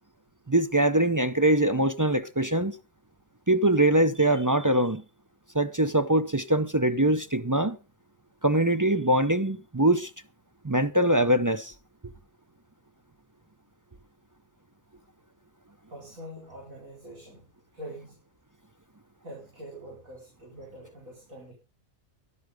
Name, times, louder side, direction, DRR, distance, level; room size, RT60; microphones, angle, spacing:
voice 1, 0.5-2.7 3.5-5.0 5.5-7.8 8.4-10.1 10.6-11.7, right 1 dB, 25° right, 0.5 m, -23 dB
voice 2, 15.9-17.4 17.7-18.2 19.2-21.5, right 1 dB, 80° right, 5.1 m, -44 dB
13.0 x 11.5 x 5.1 m
omnidirectional pair, 1.4 m